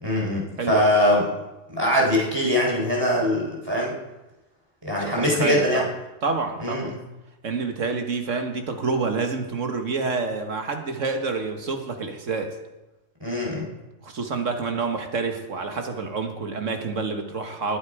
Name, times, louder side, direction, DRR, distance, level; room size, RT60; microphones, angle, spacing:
voice 1, 0.0-1.3 1.7-3.9 4.8-5.8 6.6-7.0 13.2-13.7, left 1 dB, 15° right, -3 dB, 3.9 m, -22 dB
voice 2, 0.6-0.9 5.0-5.9 6.2-7.0 7.4-12.6 14.0-17.8, right 4 dB, 65° right, 5 dB, 1.8 m, -28 dB
20.0 x 8.3 x 4.9 m, 1.0 s
omnidirectional pair, 1.4 m